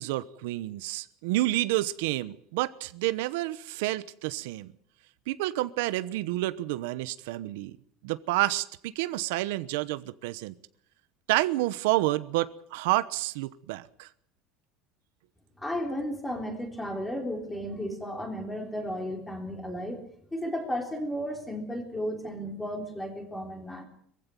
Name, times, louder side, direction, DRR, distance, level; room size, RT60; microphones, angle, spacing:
voice 1, 0.0-4.7 5.3-7.8 8.0-10.5 11.3-14.1, right 17 dB, 90° right, 14 dB, 1.0 m, -29 dB
voice 2, 15.6-20.0 20.3-23.9, equal, 5° left, 4 dB, 3.7 m, -34 dB
21.5 x 15.5 x 9.2 m, 0.66 s
cardioid pair, 170°, 0 cm